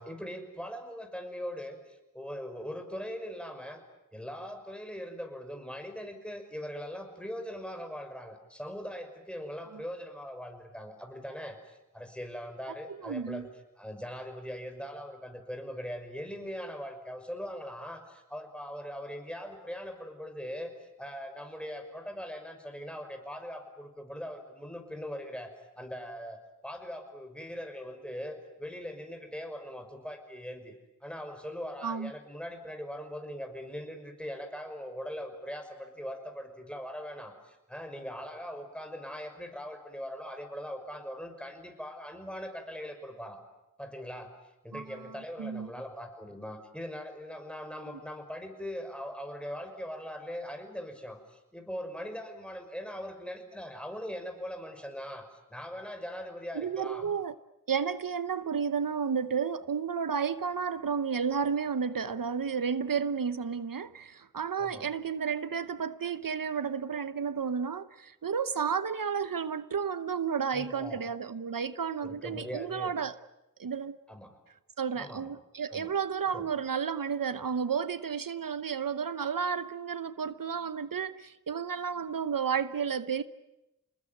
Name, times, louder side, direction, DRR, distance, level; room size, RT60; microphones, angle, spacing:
voice 1, 0.0-3.8 4.1-13.5 13.8-30.7 31.0-43.4 43.8-44.3 44.6-57.1 64.6-64.9 70.5-71.0 72.0-72.9 74.1-74.4 74.9-75.3 75.7-75.9 76.3-76.5, equal, 5° left, 5.7 m, -41 dB
voice 2, 13.0-13.4 31.8-32.1 44.7-45.7 56.5-57.3 57.7-73.1 73.6-74.0 74.8-83.2, right 6 dB, 75° right, 0.9 m, -32 dB
29.5 x 20.0 x 9.4 m
wide cardioid pair, 45°, 33 cm